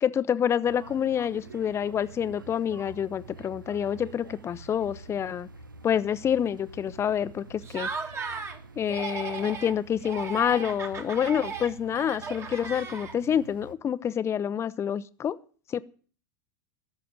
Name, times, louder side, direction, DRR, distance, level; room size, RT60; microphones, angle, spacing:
voice 1, 0.0-5.5 5.8-7.9 8.8-15.4 15.7-15.8, left 8 dB, 25° left, 15 dB, 0.7 m, -27 dB
sound 1, 0.6-13.7, right 4 dB, 85° right, 0.8 m, -47 dB
Laughter, 7.6-8.6 8.9-9.7 10.0-13.4, right 5 dB, 25° right, 1.7 m, -36 dB
13.5 x 7.0 x 9.3 m, 0.43 s
figure-of-eight pair, 85°, 11 cm